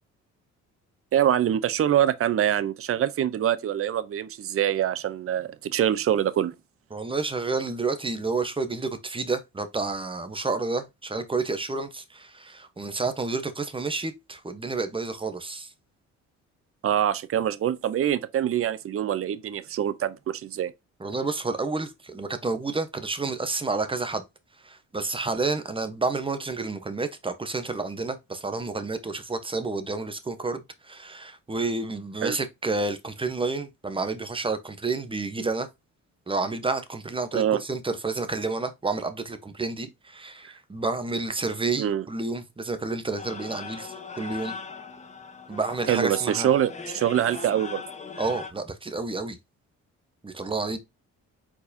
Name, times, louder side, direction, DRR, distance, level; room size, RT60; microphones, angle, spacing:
voice 1, 1.1-6.5 16.8-20.7 32.2-32.4 37.3-37.6 41.8-42.0 45.9-47.8, right 10 dB, 50° right, 0.6 m, -24 dB
voice 2, 6.9-15.7 21.0-24.2 24.6-35.7 36.3-44.5 45.5-46.5 48.2-49.4 50.2-50.8, right 3 dB, 15° right, 1.0 m, -30 dB
sound 1, 43.2-48.5, left 5 dB, 25° left, 1.0 m, -39 dB
4.6 x 4.1 x 2.7 m
cardioid pair, 90°, 30 cm